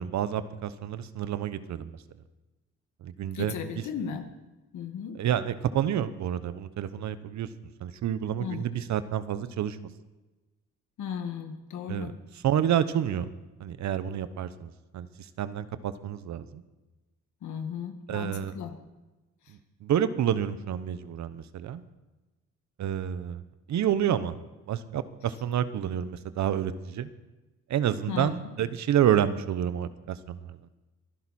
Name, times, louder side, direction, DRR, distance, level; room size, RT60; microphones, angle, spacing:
voice 1, 0.0-2.0 3.0-3.8 5.1-7.5 7.8-9.8 11.9-13.3 13.6-15.1 15.4-16.6 18.1-18.5 19.5-21.8 22.8-23.4 23.7-24.3 24.7-27.1 27.7-30.6, right 10 dB, 65° right, 13 dB, 1.0 m, -29 dB
voice 2, 3.3-4.3 4.7-5.2 8.4-8.6 11.0-12.1 17.4-18.8 28.1-28.3, left 7 dB, 75° left, 6 dB, 1.9 m, -35 dB
23.5 x 11.0 x 4.3 m, 1.1 s
cardioid pair, 90°, 30 cm